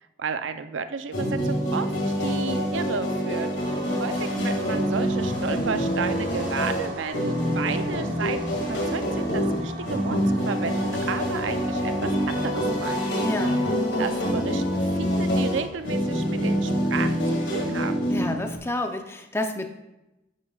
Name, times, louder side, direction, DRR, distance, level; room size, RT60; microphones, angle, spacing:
voice 1, 0.2-1.9 2.2-3.5 4.0-10.2 10.5-13.1 14.0-17.1 17.5-17.9, right 5 dB, 80° right, 10 dB, 0.5 m, -32 dB
sound 1, 1.1-18.6, equal, 65° left, 2.1 m, -26 dB
sound 2, 3.5-17.1, right 1 dB, 45° right, 1.5 m, -41 dB
voice 2, 13.2-13.6 18.1-19.7, left 1 dB, 15° left, 5 dB, 0.6 m, -29 dB
9.9 x 8.8 x 2.3 m, 0.96 s
head